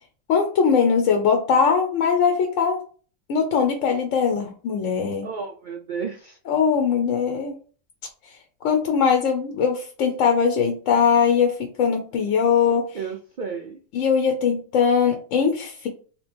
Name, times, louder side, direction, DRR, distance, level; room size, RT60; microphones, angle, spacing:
voice 1, 0.3-2.8 3.3-5.3 6.5-7.5 8.6-12.9 13.9-15.9, left 6 dB, 75° left, 3 dB, 1.0 m, -21 dB
voice 2, 5.2-6.4 12.9-13.8, right 5 dB, 80° right, 3 dB, 0.4 m, -32 dB
3.3 x 2.9 x 3.3 m, 0.40 s
omnidirectional pair, 1.4 m